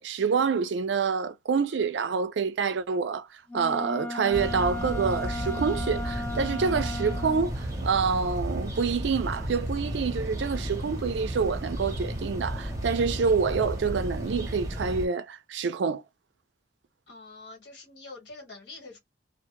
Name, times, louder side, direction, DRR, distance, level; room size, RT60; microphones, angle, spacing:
voice 1, 0.0-3.3 3.5-16.0, right 5 dB, 75° right, 0.4 m, -27 dB
Wind instrument woodwind instrument, 3.5-7.5, left 2 dB, 10° left, 0.3 m, -35 dB
sound 1, 4.3-15.1, equal, 20° right, 0.7 m, -33 dB
voice 2, 17.1-19.0, left 3 dB, 70° left, 1.3 m, -45 dB
2.1 x 2.1 x 2.9 m
head